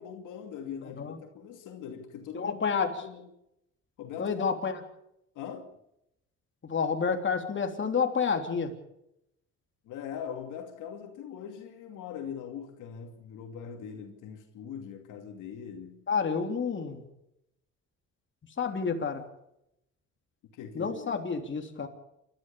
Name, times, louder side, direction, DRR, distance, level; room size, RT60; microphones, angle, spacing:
voice 1, 0.0-3.3 4.0-4.5 5.3-5.8 9.9-16.0 20.5-21.3, left 7 dB, 90° left, 2.6 m, -42 dB
voice 2, 2.3-2.9 4.2-4.8 6.6-8.7 16.1-17.0 18.6-19.2 20.7-21.9, left 5 dB, 40° left, 3.4 m, -29 dB
28.0 x 13.5 x 7.1 m
cardioid pair, 90°, 30 cm